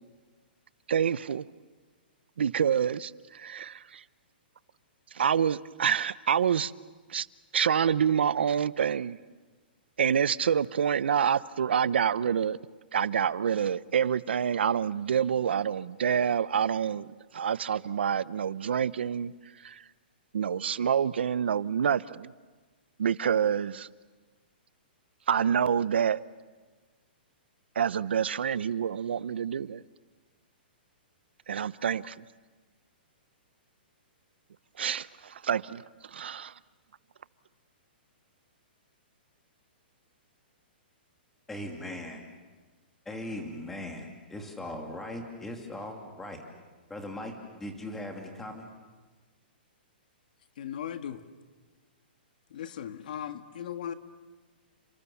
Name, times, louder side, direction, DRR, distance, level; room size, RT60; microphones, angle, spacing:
voice 1, 0.9-1.5 2.4-4.0 5.1-6.7 7.1-7.3 7.5-9.2 10.0-12.6 12.9-19.3 19.6-19.8 20.3-22.3 23.0-23.9 25.3-26.2 27.8-29.8 31.5-32.2 34.8-35.8 36.1-36.5, right 8 dB, 80° right, 18 dB, 0.8 m, -27 dB
voice 2, 41.5-42.2 43.1-46.4 46.9-48.7, left 1 dB, 5° left, 3 dB, 2.6 m, -39 dB
voice 3, 50.6-51.2 52.5-53.9, left 9 dB, 50° left, 9 dB, 1.6 m, -37 dB
30.0 x 25.5 x 7.2 m, 1.3 s
hypercardioid pair, 175°, 6 cm